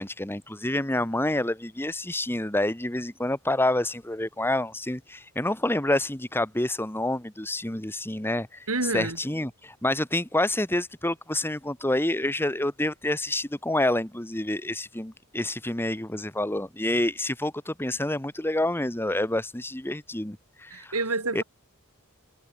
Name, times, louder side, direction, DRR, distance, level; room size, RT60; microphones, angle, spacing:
voice 1, 0.0-8.6 8.9-20.9 21.3-21.4, left 1 dB, 10° left, 1.7 m, -28 dB
voice 2, 8.7-9.2 20.7-21.4, right 3 dB, 75° right, 4.3 m, -28 dB
head